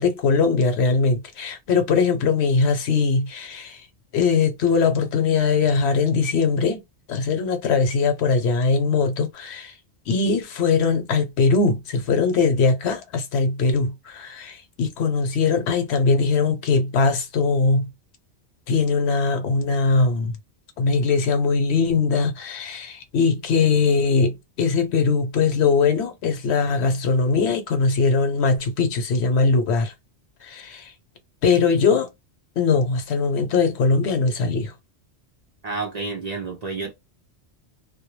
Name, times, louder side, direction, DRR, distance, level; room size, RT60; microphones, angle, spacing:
voice 1, 0.0-3.8 4.1-6.8 7.1-9.7 10.1-17.9 18.7-20.4 20.8-29.9 30.4-30.9 31.4-32.1 32.6-34.7, left 4 dB, 75° left, 0.9 m, -21 dB
voice 2, 35.6-36.9, right 4 dB, 50° right, 0.5 m, -30 dB
2.2 x 2.1 x 3.0 m
omnidirectional pair, 1.1 m